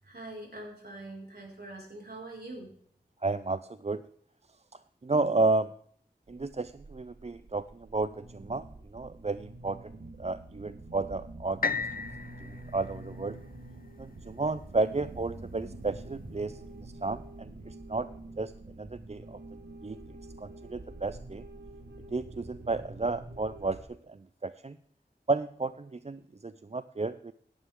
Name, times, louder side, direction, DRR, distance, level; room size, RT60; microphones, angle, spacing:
voice 1, 0.0-2.7, right 2 dB, 65° right, -2 dB, 5.1 m, -43 dB
voice 2, 3.2-4.0 5.0-5.7 6.3-12.1 12.4-13.4 14.0-18.1 18.4-19.4 19.8-20.0 20.4-21.4 22.1-24.8 25.3-27.3, right 3 dB, 40° right, 14 dB, 0.4 m, -32 dB
sound 1, 6.3-23.8, right 2 dB, 85° right, 1.3 m, -47 dB
sound 2, 11.6-15.6 16.1-16.2, left 5 dB, 55° left, 0.6 m, -37 dB
17.0 x 10.0 x 3.6 m, 0.64 s
wide cardioid pair, 50°, 18 cm